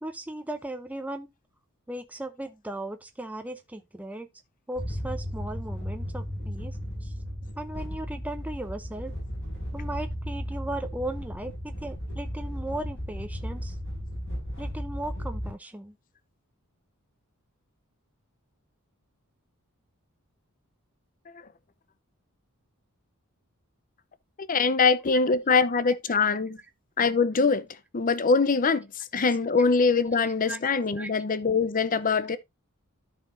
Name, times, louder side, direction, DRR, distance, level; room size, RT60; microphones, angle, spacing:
voice 1, 0.0-1.3 1.9-4.3 4.7-7.1 7.6-9.1 9.7-13.8 14.6-16.0 24.8-24.9 25.9-26.0 30.2-30.6 31.0-31.1, right 1 dB, 5° right, 0.5 m, -37 dB
sound 1, 4.7-15.5, equal, 60° left, 4.9 m, -35 dB
voice 2, 24.5-26.6 27.0-27.7 27.9-28.9 29.1-32.4, left 4 dB, 35° left, 0.6 m, -23 dB
13.0 x 4.7 x 2.6 m
head